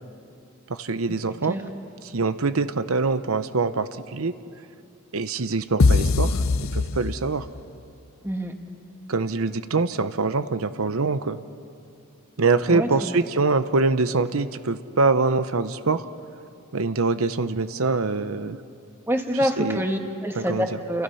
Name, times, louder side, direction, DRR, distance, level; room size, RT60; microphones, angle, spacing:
voice 1, 0.7-1.6 2.1-4.3 5.1-6.4 6.7-7.4 9.1-11.4 12.4-16.0 16.7-18.6 19.4-19.8 20.4-20.7, right 3 dB, 80° right, 12 dB, 0.8 m, -24 dB
sound 1, 5.8-7.6, left 3 dB, 75° left, 0.7 m, -21 dB
voice 2, 12.7-13.2 19.1-21.0, equal, 10° right, 3 dB, 1.8 m, -26 dB
29.5 x 28.5 x 5.7 m, 2.6 s
head